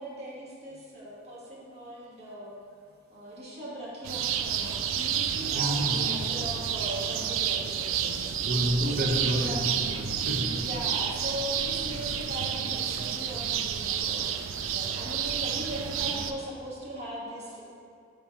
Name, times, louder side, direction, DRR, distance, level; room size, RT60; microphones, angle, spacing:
voice 1, 0.0-2.5 3.1-8.3 8.8-9.6 10.5-17.6, equal, 35° right, -6 dB, 1.6 m, -39 dB
sound 1, 4.0-16.3, right 8 dB, 85° right, 0.4 m, -30 dB
voice 2, 5.5-6.2 8.5-10.6, equal, 55° right, 1 dB, 0.9 m, -30 dB
5.8 x 5.0 x 4.6 m, 2.3 s
head